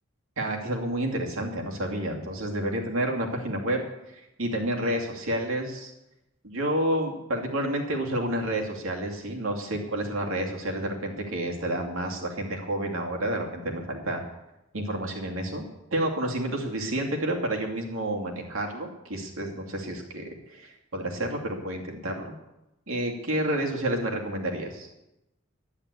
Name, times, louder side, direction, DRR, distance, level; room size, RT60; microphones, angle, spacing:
voice 1, 0.4-5.9 6.4-14.2 14.7-15.6 15.9-22.3 22.9-24.9, right 1 dB, 80° right, 1 dB, 2.5 m, -30 dB
11.0 x 10.0 x 8.3 m, 0.94 s
head